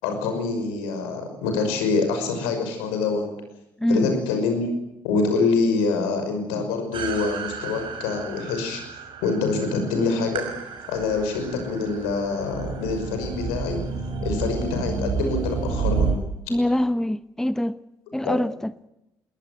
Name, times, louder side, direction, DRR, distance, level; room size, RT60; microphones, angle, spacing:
voice 1, 0.0-3.3 3.9-4.7 5.0-8.8 9.2-10.5 10.9-13.8 14.2-16.1 18.2-18.4, left 4 dB, 75° left, 6 dB, 5.8 m, -25 dB
sound 1, 6.9-16.1, right 5 dB, 55° right, 5.7 m, -30 dB
voice 2, 16.5-17.7 18.1-18.7, left 1 dB, 5° left, 16 dB, 0.8 m, -23 dB
22.0 x 18.0 x 9.2 m, 0.89 s
figure-of-eight pair, 50°, 10 cm